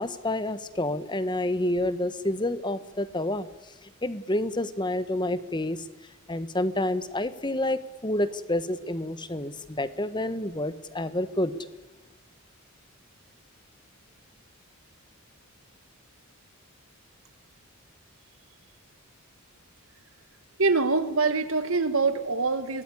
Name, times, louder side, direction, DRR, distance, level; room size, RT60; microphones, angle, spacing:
voice 1, 0.0-5.9 6.3-11.6, left 1 dB, 20° left, 14 dB, 1.4 m, -29 dB
voice 2, 20.6-22.8, right 3 dB, 70° right, 10 dB, 2.1 m, -24 dB
25.0 x 19.0 x 10.0 m, 1.1 s
head